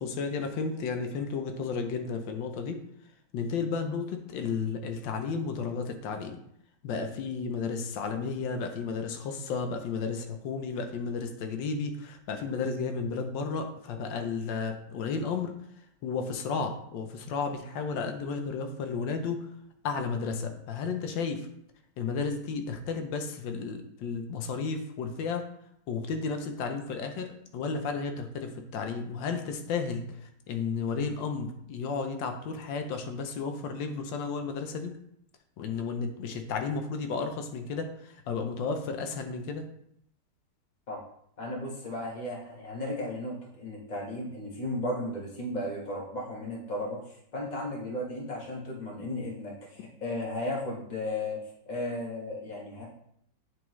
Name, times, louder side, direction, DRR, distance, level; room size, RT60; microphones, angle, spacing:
voice 1, 0.0-2.8 3.3-6.4 6.8-15.5 16.0-19.4 19.8-21.4 22.0-25.4 25.9-34.9 35.6-39.6, left 5 dB, 80° left, 6 dB, 1.3 m, -33 dB
voice 2, 41.4-51.4 51.7-52.9, left 1 dB, 25° left, -2 dB, 1.2 m, -35 dB
9.3 x 3.5 x 3.1 m, 0.72 s
omnidirectional pair, 2.0 m